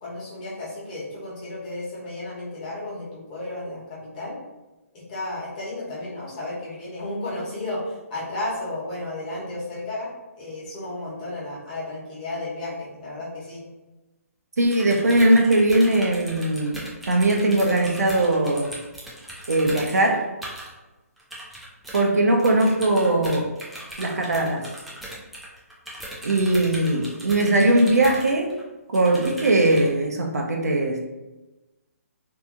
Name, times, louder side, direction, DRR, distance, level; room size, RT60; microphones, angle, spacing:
voice 1, 0.0-4.4 4.9-13.6, left 2 dB, 30° left, -6 dB, 1.0 m, -33 dB
sound 1, 14.6-20.7 21.2-22.0 22.4-28.6 28.9-29.9, right 1 dB, ahead, 0.3 m, -38 dB
voice 2, 14.6-18.7 19.5-20.2 21.9-23.5 24.0-24.7 26.2-28.5 28.9-31.1, right 1 dB, 90° right, 2 dB, 0.6 m, -20 dB
2.7 x 2.5 x 2.4 m, 1.1 s
hypercardioid pair, 155°, 8 cm